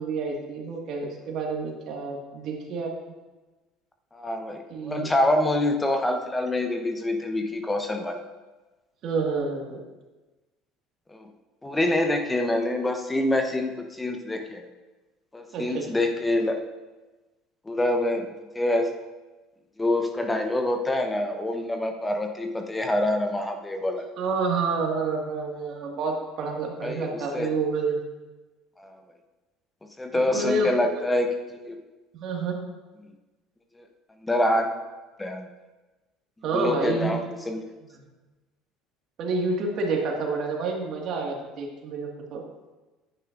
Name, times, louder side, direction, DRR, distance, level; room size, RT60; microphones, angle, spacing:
voice 1, 0.0-2.9 4.7-5.1 9.0-9.8 15.5-15.9 24.2-28.0 30.3-31.0 32.1-32.6 36.4-37.2 39.2-42.4, right 4 dB, 55° right, 1 dB, 1.8 m, -28 dB
voice 2, 4.1-8.2 11.1-11.3 11.6-14.6 15.3-16.6 17.7-18.3 18.5-18.9 19.8-24.0 26.8-27.5 28.8-29.0 30.0-31.8 34.2-34.7 35.2-35.5 36.5-37.6, left 1 dB, 15° left, 4 dB, 1.0 m, -26 dB
10.5 x 9.1 x 2.6 m, 1.2 s
hypercardioid pair, 70°, 0 cm